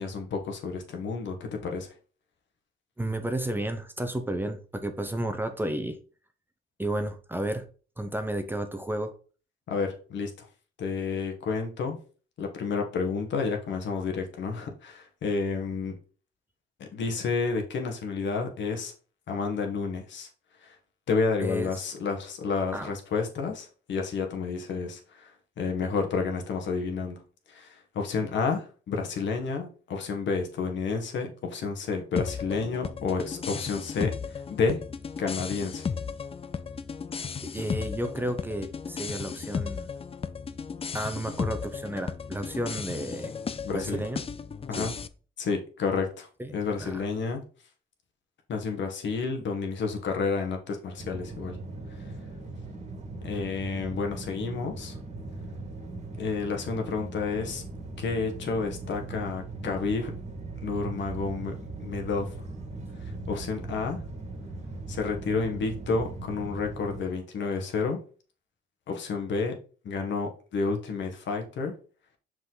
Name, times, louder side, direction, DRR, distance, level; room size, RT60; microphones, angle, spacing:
voice 1, 0.0-1.4 1.6-1.9 9.7-10.5 10.8-12.0 12.4-16.0 16.8-18.9 19.3-20.3 20.6-20.8 21.1-27.2 27.5-34.8 35.2-35.9 43.6-44.1 44.7-44.9 45.4-46.3 46.5-47.4 48.5-51.6 53.2-55.0 56.2-57.6 58.0-60.1 60.6-61.5 61.8-62.3 63.0-64.0 64.9-68.0 68.9-69.6 69.8-71.7, left 4 dB, 70° left, 3 dB, 1.7 m, -30 dB
voice 2, 3.0-6.0 6.8-7.7 8.0-9.1 21.4-21.7 22.7-22.9 37.5-39.9 40.9-43.3 43.7-44.2 44.7-44.9 46.4-47.0, right 1 dB, 10° right, 7 dB, 0.9 m, -32 dB
sound 1, 32.2-45.1, left 6 dB, 30° left, 0.5 m, -35 dB
sound 2, 51.0-67.0, right 3 dB, 35° right, 1.9 m, -39 dB
5.9 x 5.1 x 4.0 m, 0.38 s
cardioid pair, 90°, 20 cm